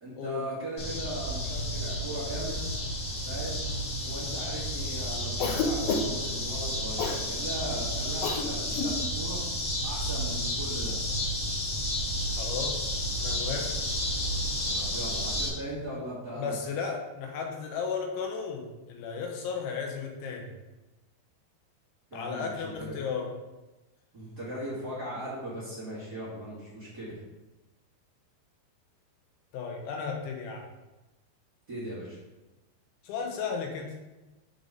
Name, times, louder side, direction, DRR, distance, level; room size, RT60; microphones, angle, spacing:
voice 1, 0.0-2.6 3.2-3.6 4.0-9.4 9.8-11.0 14.7-16.5 22.1-22.9 24.1-27.2 31.7-32.2, right 1 dB, 35° right, -9 dB, 1.6 m, -38 dB
sound 1, 0.8-15.5, equal, 60° left, 1.0 m, -31 dB
Cough, 5.4-6.3 7.0-7.2 8.2-8.4 8.7-8.9, left 4 dB, 75° left, 2.4 m, -29 dB
voice 2, 12.3-12.9 13.2-13.7 16.4-20.5 22.1-23.3 29.5-30.7 33.0-33.9, left 5 dB, 90° left, 1 dB, 3.5 m, -34 dB
7.7 x 4.1 x 5.0 m, 1.1 s
omnidirectional pair, 5.2 m